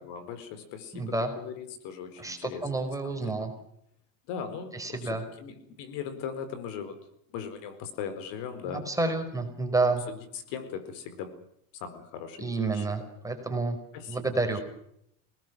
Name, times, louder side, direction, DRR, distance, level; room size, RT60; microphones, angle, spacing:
voice 1, 0.0-3.5 4.3-7.0 7.3-8.8 10.1-10.2 10.5-11.3 11.7-12.8 13.9-14.3 14.5-14.6, left 7 dB, 60° left, 12 dB, 4.6 m, -39 dB
voice 2, 0.9-1.3 2.2-3.5 4.7-5.2 8.6-10.0 12.4-13.8 14.1-14.6, right 3 dB, 5° right, 5 dB, 5.1 m, -29 dB
27.5 x 19.5 x 6.2 m, 0.73 s
supercardioid pair, 130°, 47 cm